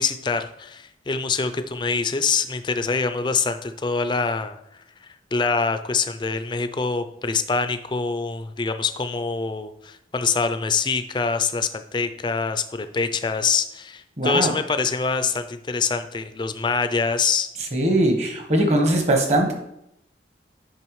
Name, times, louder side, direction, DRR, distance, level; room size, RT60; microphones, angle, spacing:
voice 1, 0.0-4.8 5.3-17.5, left 5 dB, 25° left, 9 dB, 0.4 m, -25 dB
voice 2, 14.2-14.5 17.7-19.5, right 1 dB, 40° right, 3 dB, 1.1 m, -20 dB
8.8 x 5.6 x 3.1 m, 0.80 s
head